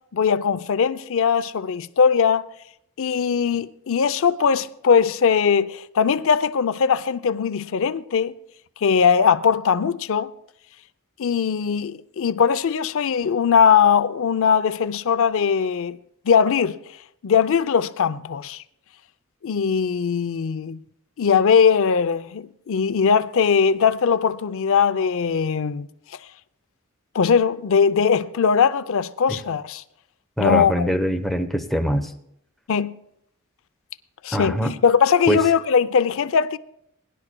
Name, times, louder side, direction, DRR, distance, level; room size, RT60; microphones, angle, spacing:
voice 1, 0.1-2.4 3.0-8.3 8.8-10.3 11.2-16.0 16.3-16.8 17.2-18.6 19.4-20.8 21.2-25.9 27.1-29.8 30.4-30.9 32.7-32.9 34.2-36.6, left 6 dB, 65° left, 0.5 m, -20 dB
voice 2, 30.4-32.1 34.3-34.7 35.3-35.4, equal, ahead, 0.8 m, -23 dB
21.5 x 11.0 x 2.2 m
head